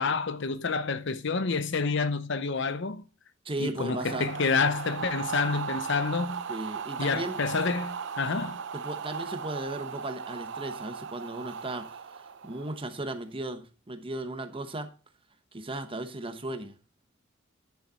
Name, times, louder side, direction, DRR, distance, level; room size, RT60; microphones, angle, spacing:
voice 1, 0.0-3.0 3.6-6.4 7.0-8.6, left 4 dB, 60° left, 0.7 m, -28 dB
voice 2, 3.4-4.3 6.5-7.4 8.7-12.0 12.4-14.9 15.5-16.8, right 2 dB, 25° right, 1.0 m, -36 dB
sound 1, 3.9-13.0, right 6 dB, 60° right, 0.6 m, -37 dB
10.5 x 6.6 x 4.1 m
head